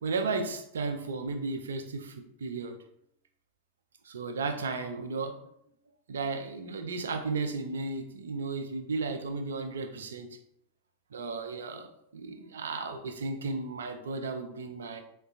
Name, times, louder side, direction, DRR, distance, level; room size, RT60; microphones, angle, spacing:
voice 1, 0.0-2.8 4.0-5.6 6.1-10.3 11.1-11.9 12.1-15.0, right 3 dB, 65° right, 6 dB, 0.4 m, -34 dB
3.7 x 2.2 x 2.4 m, 0.73 s
figure-of-eight pair, 90°, 0 cm